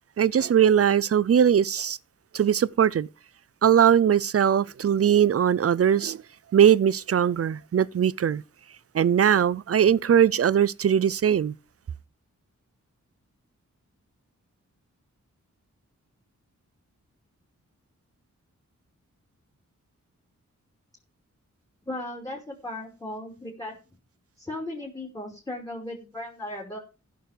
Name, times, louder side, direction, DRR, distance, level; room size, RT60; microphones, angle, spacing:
voice 1, 0.2-2.0 2.3-3.1 3.6-6.2 6.5-8.4 8.9-11.5, right 9 dB, 50° right, 0.5 m, -20 dB
voice 2, 21.9-23.8 24.4-26.8, left 1 dB, 10° left, 2.9 m, -36 dB
15.0 x 6.4 x 5.1 m
wide cardioid pair, 110°, 30 cm